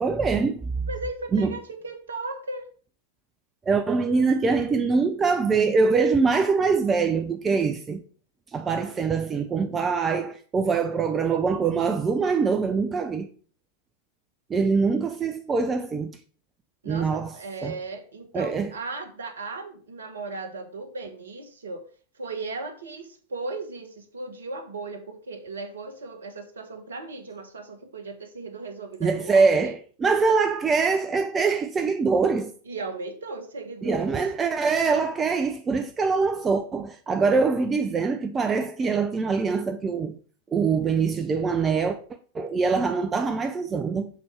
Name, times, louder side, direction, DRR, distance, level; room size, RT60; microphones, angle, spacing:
voice 1, 0.0-0.9 1.3-1.6 3.7-8.0 8.5-13.3 14.5-16.2 16.9-17.3 17.6-17.7 18.3-18.7 29.0-32.5 33.8-40.2 40.5-42.0 42.3-44.1, right 4 dB, 20° right, 0.5 m, -23 dB
voice 2, 0.9-2.7 16.8-21.8 22.1-29.7 32.6-34.2, right 3 dB, 70° right, 1.2 m, -36 dB
6.6 x 4.2 x 4.8 m
figure-of-eight pair, 90°, 0 cm